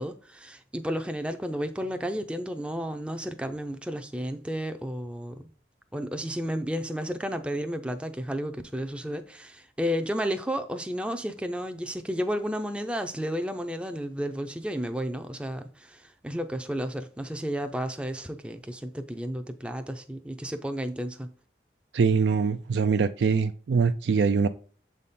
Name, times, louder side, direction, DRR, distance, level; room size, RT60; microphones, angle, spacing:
voice 1, 0.0-5.5 5.9-21.3, equal, 5° right, 0.4 m, -32 dB
voice 2, 21.9-24.5, right 5 dB, 80° right, 0.4 m, -23 dB
7.4 x 4.1 x 3.6 m
head